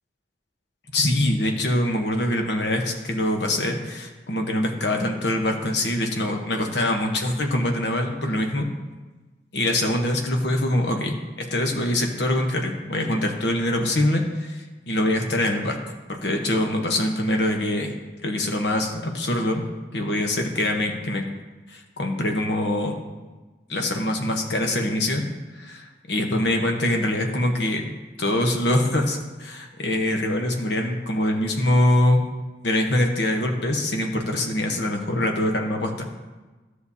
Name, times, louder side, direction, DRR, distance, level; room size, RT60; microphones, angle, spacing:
voice 1, 0.9-8.7 9.5-15.8 16.1-17.9 18.2-19.6 19.9-21.2 21.7-23.0 23.7-25.2 25.5-32.3 32.6-36.1, left 1 dB, 70° left, 3 dB, 1.1 m, -24 dB
13.0 x 6.6 x 2.8 m, 1.2 s
head